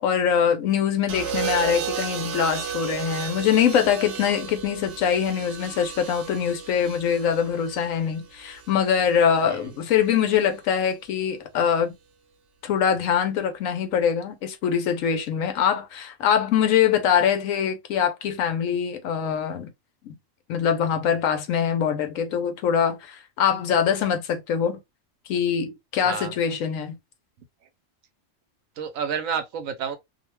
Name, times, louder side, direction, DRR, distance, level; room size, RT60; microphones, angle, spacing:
voice 1, 0.0-11.9 12.6-19.7 20.0-20.2 20.5-24.8 25.3-27.0, left 8 dB, 85° left, 1.0 m, -23 dB
sound 1, 1.1-9.2 10.5-10.9, right 8 dB, 60° right, 0.8 m, -34 dB
voice 2, 26.0-26.4 28.8-30.0, right 7 dB, 80° right, 1.1 m, -30 dB
2.7 x 2.1 x 3.0 m
omnidirectional pair, 1.4 m